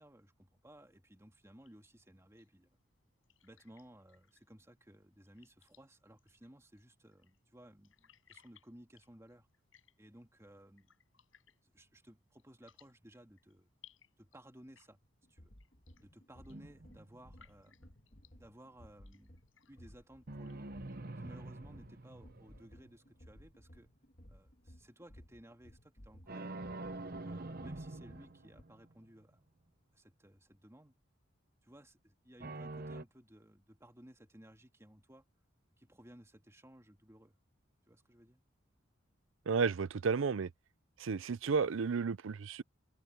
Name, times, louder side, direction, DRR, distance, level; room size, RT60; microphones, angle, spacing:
voice 1, 0.0-2.7 3.4-9.5 10.0-10.9 11.6-13.7 14.2-15.0 15.3-15.5 16.0-17.8 18.4-19.3 19.7-20.7 21.2-23.9 24.3-26.5 27.2-29.4 29.9-30.9 31.6-35.2 35.8-37.3 37.9-38.4, right 1 dB, 15° right, 2.5 m, -58 dB
sound 1, 1.6-21.5, left 9 dB, 90° left, 6.1 m, -69 dB
sound 2, 15.0-28.6, equal, 45° left, 1.8 m, -59 dB
sound 3, 16.5-17.6 20.3-23.0 26.3-29.0 32.4-33.0, right 2 dB, 50° right, 1.0 m, -46 dB
voice 2, 39.5-40.5 41.0-42.6, right 5 dB, 85° right, 0.5 m, -32 dB
head